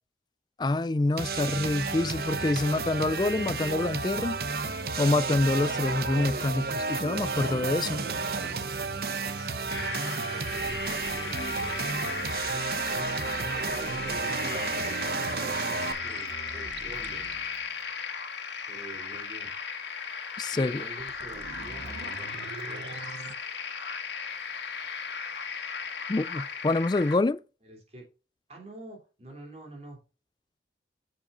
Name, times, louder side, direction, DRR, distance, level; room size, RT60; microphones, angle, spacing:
voice 1, 0.6-4.4 5.0-8.1 11.3-11.5 20.4-20.8 26.1-27.4, left 2 dB, 25° left, 0.3 m, -26 dB
sound 1, 1.2-15.9, right 4 dB, 55° right, 0.9 m, -32 dB
sound 2, 7.1-17.9 20.9-23.3, right 4 dB, 85° right, 0.8 m, -43 dB
sound 3, 9.7-27.2, left 6 dB, 85° left, 1.9 m, -37 dB
voice 2, 10.1-12.2 13.5-17.5 18.6-19.5 20.5-23.1 27.6-28.1 28.5-30.0, right 2 dB, 35° right, 3.2 m, -47 dB
9.9 x 7.6 x 2.5 m
head